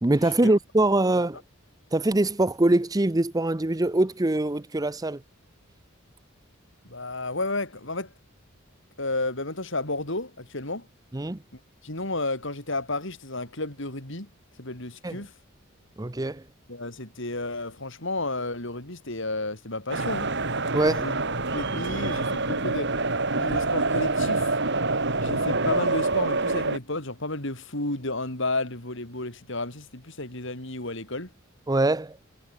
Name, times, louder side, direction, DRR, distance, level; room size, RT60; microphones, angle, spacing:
voice 1, 0.0-1.4 1.9-5.2 11.1-11.4 15.0-15.2 16.0-16.4 20.7-21.1 31.7-32.2, right 2 dB, 15° right, 0.7 m, -23 dB
voice 2, 6.8-8.1 9.0-10.9 11.5-14.3 14.6-15.3 16.7-20.3 20.9-21.2 21.5-22.9 23.3-24.6 25.2-31.3, left 2 dB, 60° left, 5.7 m, -32 dB
sound 1, 19.9-26.8, right 3 dB, 55° right, 4.1 m, -26 dB
head